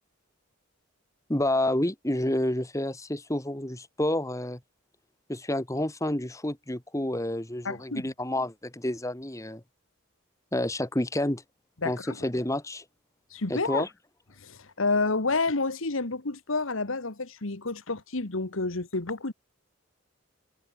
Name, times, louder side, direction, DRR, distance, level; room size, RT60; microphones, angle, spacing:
voice 1, 1.3-4.6 5.3-9.6 10.5-11.4 11.9-12.8 13.5-13.9, left 1 dB, 15° left, 1.7 m, -29 dB
voice 2, 7.6-8.1 11.8-12.3 13.3-13.8 14.4-19.3, left 3 dB, 75° left, 1.7 m, -29 dB
head